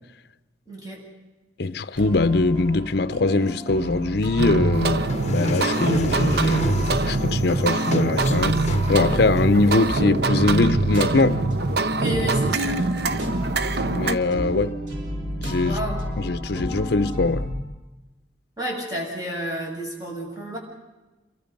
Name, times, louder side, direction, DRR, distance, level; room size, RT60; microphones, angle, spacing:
voice 1, 0.7-1.0 4.8-5.0 12.0-12.9 15.6-16.1 18.6-20.6, right 1 dB, 20° right, 7.2 m, -31 dB
voice 2, 1.6-5.0 5.3-8.6 8.9-11.5 13.9-14.8 15.4-15.8 16.2-17.5, left 3 dB, 60° left, 0.7 m, -22 dB
sound 1, 2.0-17.6, equal, 90° right, 5.5 m, -31 dB
sound 2, 4.4-14.2, right 3 dB, 60° right, 0.9 m, -24 dB
sound 3, 4.7-10.0, left 3 dB, 35° left, 1.0 m, -35 dB
28.0 x 23.5 x 5.4 m
head